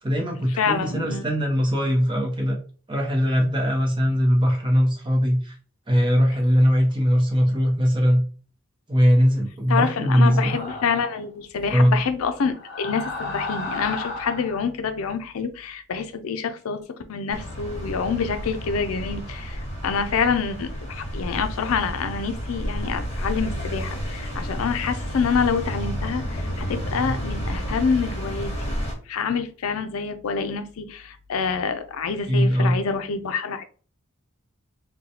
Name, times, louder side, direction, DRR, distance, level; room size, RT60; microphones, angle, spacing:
voice 1, 0.0-2.6 2.9-5.5 5.9-8.2 8.9-10.5 11.7-12.0 32.3-32.7, equal, 25° right, 1 dB, 0.8 m, -20 dB
voice 2, 0.6-1.3 9.7-16.8 17.1-28.5 29.1-33.6, left 5 dB, 85° left, 9 dB, 0.4 m, -27 dB
sound 1, 10.0-11.2 12.5-14.6, left 2 dB, 50° left, 0.7 m, -33 dB
sound 2, 17.3-28.9, equal, 30° left, 1.1 m, -31 dB
3.9 x 2.2 x 2.8 m, 0.40 s
head